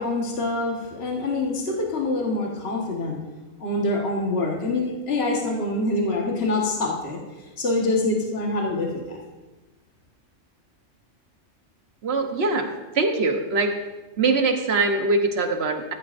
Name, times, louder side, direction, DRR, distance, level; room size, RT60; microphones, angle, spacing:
voice 1, 0.0-3.2 3.6-7.2 7.6-9.2, left 2 dB, 55° left, -1 dB, 1.7 m, -25 dB
voice 2, 12.0-12.7 12.9-13.7 14.2-15.9, right 3 dB, 55° right, 5 dB, 1.2 m, -22 dB
14.0 x 12.0 x 2.6 m, 1.1 s
omnidirectional pair, 1.3 m